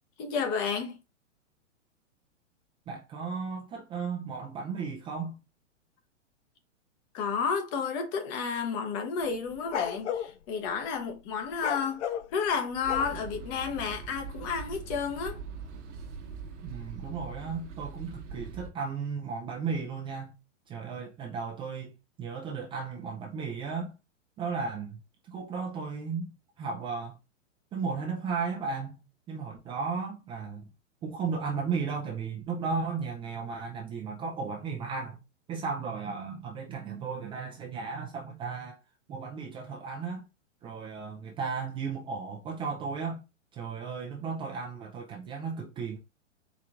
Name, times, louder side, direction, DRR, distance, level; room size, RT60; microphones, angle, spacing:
voice 1, 0.2-1.0 7.1-12.0 12.3-15.4, left 6 dB, 35° left, 1.0 m, -31 dB
voice 2, 2.9-5.4 16.6-20.4 20.7-23.9 24.4-26.3 26.6-27.2 27.7-30.7 31.0-35.2 35.5-38.8 39.1-40.3 40.6-43.2 43.5-46.0, right 5 dB, 15° right, 0.4 m, -35 dB
sound 1, 9.2-10.3 11.5-13.4, left 9 dB, 65° left, 0.6 m, -33 dB
sound 2, 12.8-18.7, right 5 dB, 70° right, 1.2 m, -42 dB
4.5 x 3.7 x 2.4 m
hypercardioid pair, 115°, 37 cm